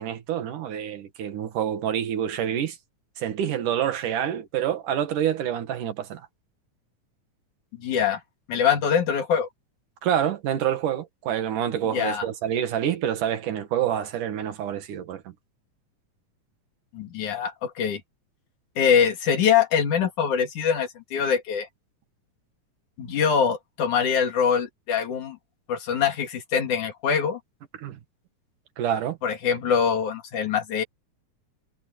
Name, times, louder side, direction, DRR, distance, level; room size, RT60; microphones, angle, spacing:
voice 1, 0.0-2.8 3.2-6.3 10.0-15.2 27.8-28.0 28.8-29.2, right 10 dB, 85° right, 3.2 m, -27 dB
voice 2, 7.7-8.2 8.5-9.5 11.9-12.3 16.9-18.0 18.8-21.7 23.0-25.4 25.7-27.4 29.2-30.8, left 7 dB, 75° left, 3.9 m, -23 dB
omnidirectional pair, 3.6 m